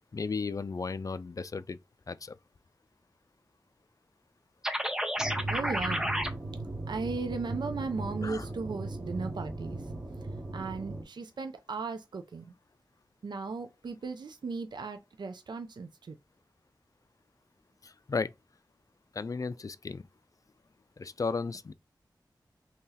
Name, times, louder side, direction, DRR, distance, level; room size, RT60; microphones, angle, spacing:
voice 1, 0.1-1.8 2.1-2.4 8.2-8.4 17.8-18.3 19.1-20.0 21.0-21.7, left 4 dB, 45° left, 0.4 m, -34 dB
sound 1, 4.6-6.3, equal, 10° right, 0.7 m, -31 dB
sound 2, 5.2-11.0, right 2 dB, 30° right, 1.0 m, -38 dB
voice 2, 5.5-6.1 6.9-12.5 13.2-16.2, right 4 dB, 70° right, 0.4 m, -37 dB
2.9 x 2.8 x 3.8 m
wide cardioid pair, 55°, 8 cm